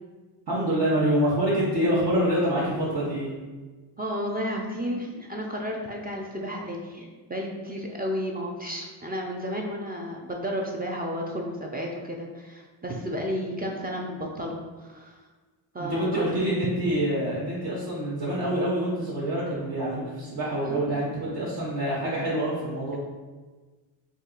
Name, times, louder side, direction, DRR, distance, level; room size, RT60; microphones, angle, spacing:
voice 1, 0.5-3.3 15.8-23.0, right 1 dB, 50° right, -9 dB, 1.1 m, -26 dB
voice 2, 4.0-15.2 15.7-16.2 20.6-21.0, equal, 20° right, 0 dB, 0.5 m, -32 dB
2.6 x 2.4 x 3.8 m, 1.3 s
supercardioid pair, 55°, 49 cm